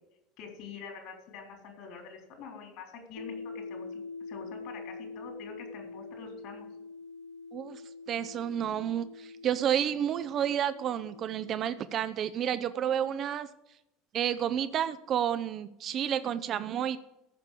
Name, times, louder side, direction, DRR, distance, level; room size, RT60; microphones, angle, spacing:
voice 1, 0.4-6.7, left 5 dB, 60° left, 2 dB, 3.9 m, -46 dB
sound 1, 3.2-12.0, left 4 dB, 90° left, 0.3 m, -45 dB
voice 2, 8.1-13.5 14.1-17.0, right 9 dB, 45° right, 12 dB, 0.6 m, -30 dB
14.5 x 6.0 x 8.3 m, 0.87 s
figure-of-eight pair, 70°, 0 cm